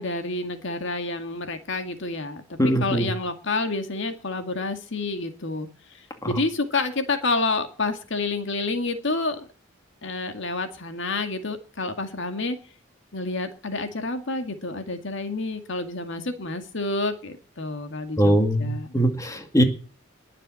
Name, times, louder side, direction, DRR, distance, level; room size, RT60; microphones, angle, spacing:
voice 1, 0.0-5.7 6.3-9.5 10.0-12.6 13.1-18.9, left 3 dB, 65° left, 7 dB, 2.1 m, -29 dB
voice 2, 2.6-3.1 6.2-6.3 18.2-19.6, equal, 15° left, 6 dB, 2.2 m, -21 dB
21.0 x 7.5 x 7.7 m, 0.39 s
head